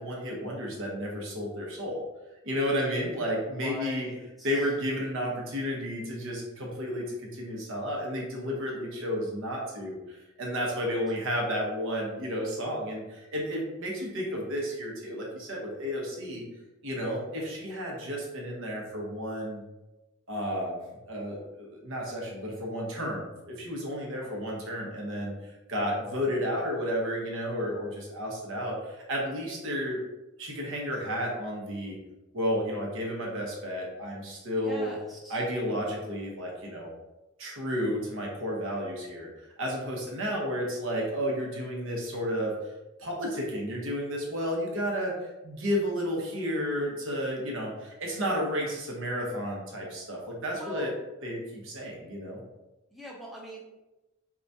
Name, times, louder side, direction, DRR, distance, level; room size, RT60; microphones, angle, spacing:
voice 1, 0.0-2.0 2.4-4.1 4.4-16.4 16.8-19.6 20.3-20.8 21.1-25.3 25.7-30.0 30.4-32.0 32.3-34.9 35.3-36.9 37.4-39.3 39.6-42.5 43.0-50.9 51.2-52.4, equal, 60° right, -1 dB, 0.9 m, -32 dB
voice 2, 3.5-4.7 10.8-11.0 24.2-24.3 34.6-35.4 50.5-50.9 52.9-53.6, left 1 dB, ahead, -5 dB, 0.4 m, -43 dB
4.7 x 2.3 x 2.6 m, 1.0 s
head